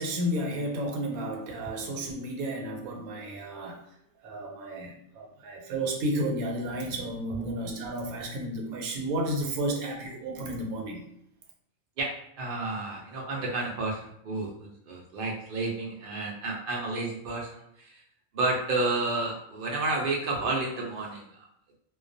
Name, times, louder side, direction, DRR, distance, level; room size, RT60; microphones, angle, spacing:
voice 1, 0.0-3.8 4.2-11.0, right 1 dB, 85° right, 1 dB, 1.0 m, -32 dB
voice 2, 12.4-18.0 18.3-21.4, right 2 dB, 65° right, -1 dB, 0.5 m, -31 dB
2.2 x 2.2 x 2.5 m, 0.75 s
omnidirectional pair, 1.5 m